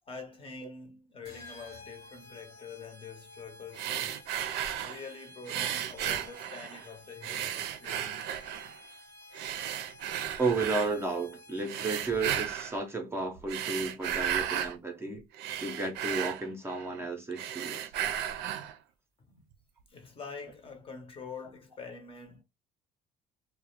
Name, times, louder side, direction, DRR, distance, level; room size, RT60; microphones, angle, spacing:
voice 1, 0.1-4.3 4.8-8.4 19.3-19.4 19.9-22.4, left 5 dB, 35° left, 0.7 m, -46 dB
sound 1, 1.3-12.6, left 1 dB, 60° left, 1.1 m, -53 dB
sound 2, 3.7-5.0 5.5-6.9 7.2-8.8 9.3-10.9 11.6-12.8 13.4-14.8 15.1-17.0 17.3-18.8, right 10 dB, 85° right, 0.4 m, -34 dB
voice 2, 10.4-15.3 15.6-17.9, right 3 dB, 15° right, 0.5 m, -33 dB
2.4 x 2.0 x 2.9 m
cardioid pair, 110°, 17 cm